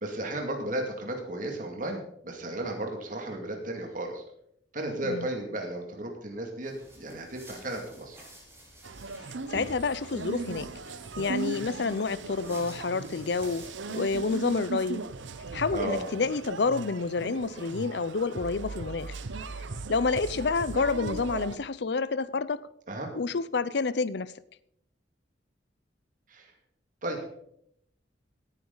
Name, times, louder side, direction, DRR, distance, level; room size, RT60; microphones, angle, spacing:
voice 1, 0.0-4.2 4.7-8.2 15.7-16.1 22.9-23.1 26.3-26.5 27.0-27.2, right 1 dB, 45° right, 2.3 m, -34 dB
sound 1, 6.6-14.5, right 1 dB, 15° right, 5.4 m, -51 dB
sound 2, 8.8-21.6, right 3 dB, 90° right, 0.8 m, -38 dB
voice 2, 9.5-10.7 11.2-15.0 15.5-19.2 19.9-22.7 23.1-24.3, left 4 dB, 65° left, 0.6 m, -29 dB
17.5 x 10.0 x 4.0 m
head